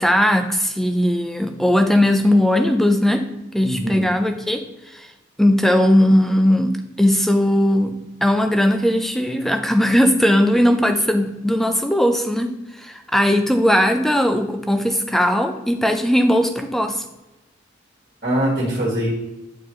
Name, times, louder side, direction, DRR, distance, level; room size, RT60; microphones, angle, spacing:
voice 1, 0.0-3.2 3.5-4.6 4.9-5.1 5.4-6.7 7.0-7.9 8.2-17.0, left 1 dB, ahead, 6 dB, 0.5 m, -18 dB
voice 2, 3.6-4.1 18.2-19.1, right 1 dB, 45° right, -4 dB, 1.9 m, -22 dB
8.8 x 4.7 x 3.1 m, 0.98 s
head